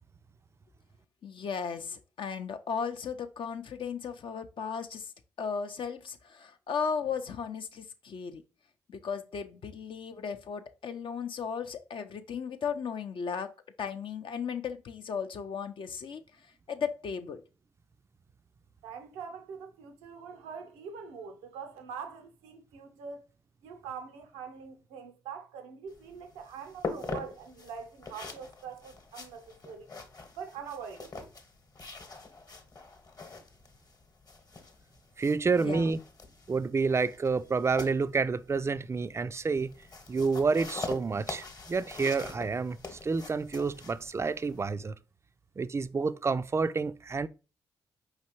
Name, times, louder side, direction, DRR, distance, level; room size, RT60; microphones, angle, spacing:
voice 1, 1.2-5.1 5.4-8.4 8.9-13.5 13.8-16.2 16.7-17.4 35.6-35.8, left 6 dB, 55° left, 0.5 m, -36 dB
voice 2, 18.8-23.2 23.6-29.9 30.4-31.3, right 6 dB, 85° right, 0.6 m, -43 dB
sound 1, 25.9-44.7, left 3 dB, 40° left, 1.0 m, -44 dB
voice 3, 35.2-36.0 36.5-39.7 40.1-44.9 45.6-47.3, right 4 dB, 25° right, 0.3 m, -29 dB
4.8 x 3.2 x 3.0 m
hypercardioid pair, 40°, 10 cm